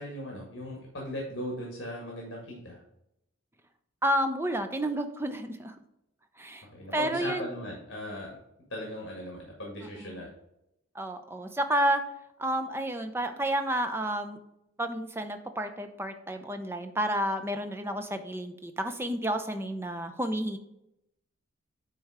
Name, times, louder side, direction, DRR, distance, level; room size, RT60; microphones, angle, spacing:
voice 1, 0.0-2.8 6.7-8.4 8.7-10.3, left 1 dB, 65° left, -1 dB, 1.8 m, -38 dB
voice 2, 4.0-5.7 6.4-6.6 6.9-7.5 10.0-10.2 10.9-12.0 12.4-14.4 14.8-20.6, right 1 dB, 10° right, 7 dB, 0.6 m, -30 dB
8.9 x 3.4 x 4.9 m, 0.83 s
head